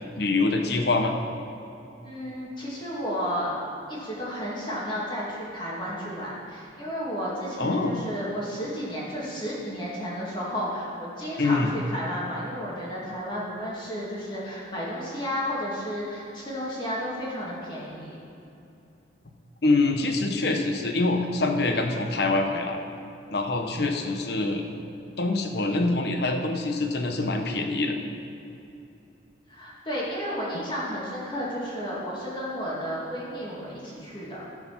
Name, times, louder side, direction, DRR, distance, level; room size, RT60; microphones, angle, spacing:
voice 1, 0.2-1.1 7.6-8.0 11.4-11.7 19.6-22.8 23.3-24.6 25.2-28.0, left 2 dB, 55° left, 4 dB, 0.9 m, -25 dB
voice 2, 2.0-3.5 3.9-18.2 29.5-34.4, equal, 25° left, -6 dB, 2.0 m, -32 dB
13.5 x 4.8 x 5.8 m, 2.8 s
head